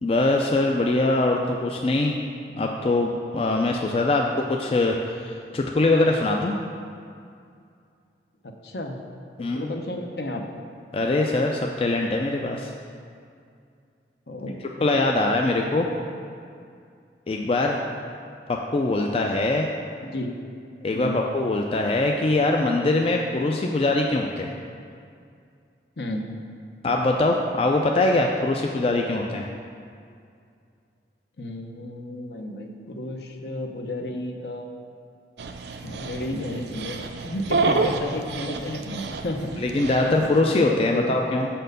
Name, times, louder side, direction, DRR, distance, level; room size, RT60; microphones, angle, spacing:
voice 1, 0.0-2.2 2.6-4.3 4.6-6.5 9.4-9.7 10.9-12.7 14.8-15.9 17.3-17.8 18.5-19.7 20.8-24.5 26.8-29.5 39.6-41.5, left 2 dB, 30° left, 1 dB, 0.4 m, -22 dB
voice 2, 8.4-9.0 9.5-10.4 14.3-15.0 15.5-16.1 20.0-20.4 20.9-21.2 26.0-26.3 31.4-34.7 35.8-39.7 40.0-40.3 40.7-41.1, left 1 dB, 65° left, 3 dB, 0.7 m, -33 dB
Dog, 35.4-40.4, right 3 dB, 70° right, 0.5 m, -29 dB
6.3 x 4.4 x 6.6 m, 2.4 s
head